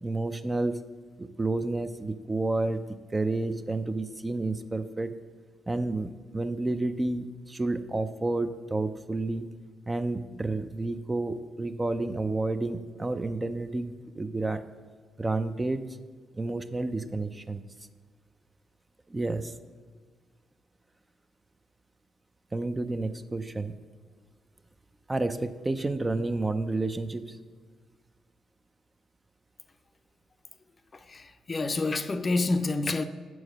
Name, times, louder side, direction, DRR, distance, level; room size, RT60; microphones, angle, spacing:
voice 1, 0.0-0.8 1.2-2.9 3.1-5.1 5.7-9.5 9.9-14.6 15.2-16.0 16.4-17.6 19.1-19.5 22.5-23.7 25.1-27.4, right 2 dB, 25° right, 0.5 m, -30 dB
voice 2, 31.1-33.0, left 3 dB, 35° left, 0.5 m, -28 dB
7.1 x 4.7 x 6.3 m
supercardioid pair, 60°, 0 cm